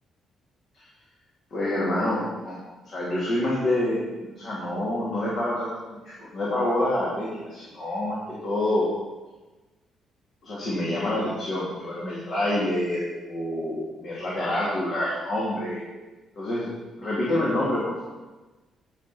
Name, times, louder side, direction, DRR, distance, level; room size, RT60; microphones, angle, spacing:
voice 1, 1.5-2.6 2.8-8.9 10.4-15.8 16.4-16.7 17.0-17.9, left 1 dB, 55° left, -7 dB, 3.1 m, -27 dB
15.0 x 6.5 x 4.7 m, 1.2 s
cardioid pair, 90°, 0 cm